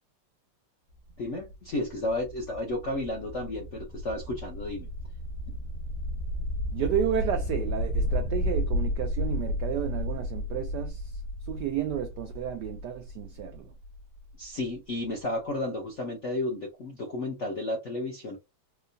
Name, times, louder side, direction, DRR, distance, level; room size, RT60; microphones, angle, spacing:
sound 1, 0.9-14.6, left 1 dB, 90° left, 2.1 m, -33 dB
voice 1, 1.2-4.9 5.5-5.6 14.4-18.4, left 1 dB, 65° left, 0.7 m, -32 dB
voice 2, 6.7-11.2 11.5-13.7, right 9 dB, 80° right, 0.9 m, -32 dB
4.6 x 2.2 x 2.6 m
omnidirectional pair, 2.3 m